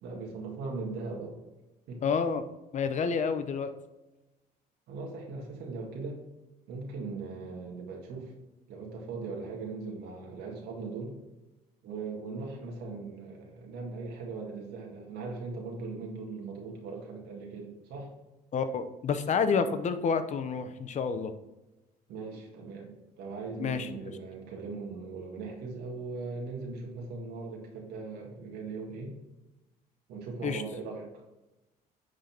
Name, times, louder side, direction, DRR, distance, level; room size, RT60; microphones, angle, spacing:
voice 1, 0.0-1.4 1.9-2.0 4.9-6.2 6.7-8.3 8.7-11.2 11.8-18.1 22.1-29.1 30.1-31.2, right 4 dB, 80° right, 0 dB, 1.8 m, -39 dB
voice 2, 2.0-2.4 2.7-3.7 18.5-21.3 23.6-24.1 30.4-30.6, left 5 dB, 45° left, 10 dB, 0.8 m, -29 dB
9.9 x 4.0 x 4.4 m, 1.0 s
cardioid pair, 110°, 17 cm